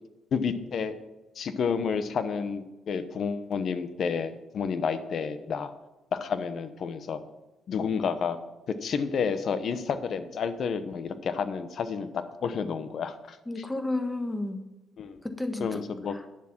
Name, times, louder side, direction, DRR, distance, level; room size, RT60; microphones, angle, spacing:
voice 1, 0.3-0.9 1.3-5.7 6.1-7.2 7.7-8.4 8.7-13.4 15.0-15.2 15.6-16.1, left 6 dB, 60° left, 12 dB, 1.0 m, -30 dB
voice 2, 13.5-14.7 15.2-15.8 16.1-16.3, left 2 dB, 10° left, 8 dB, 1.4 m, -32 dB
10.5 x 7.4 x 6.0 m, 1.1 s
cardioid pair, 90°, 0 cm